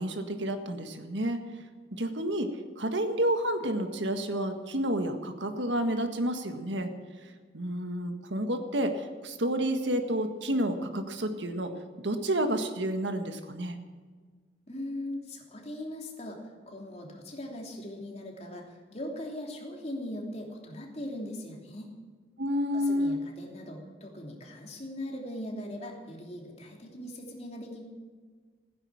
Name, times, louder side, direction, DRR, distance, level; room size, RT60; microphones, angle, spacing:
voice 1, 0.0-1.4 1.9-2.5 2.8-6.9 7.5-11.7 12.0-13.8 22.4-23.2, right 1 dB, 85° right, 7 dB, 1.7 m, -30 dB
voice 2, 14.7-21.9 22.7-27.8, left 1 dB, 35° left, 0 dB, 3.1 m, -40 dB
16.0 x 10.0 x 8.8 m, 1.5 s
head